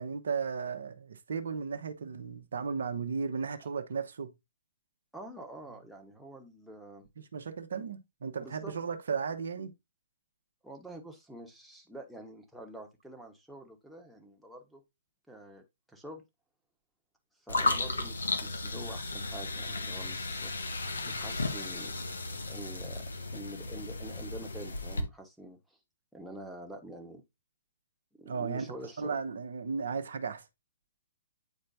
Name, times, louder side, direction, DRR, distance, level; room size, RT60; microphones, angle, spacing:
voice 1, 0.0-4.3 7.2-9.7 28.3-28.7 29.0-30.4, right 5 dB, 65° right, 0.9 m, -35 dB
voice 2, 5.1-7.1 8.4-8.7 10.6-14.8 15.3-15.6 15.9-16.2 17.4-20.5 21.1-21.9 22.4-25.6 26.1-27.2 28.2-29.2, right 1 dB, ahead, 1.3 m, -46 dB
sound 1, 17.5-25.0, left 3 dB, 75° left, 1.1 m, -34 dB
9.0 x 4.3 x 2.7 m
figure-of-eight pair, 125°, 0 cm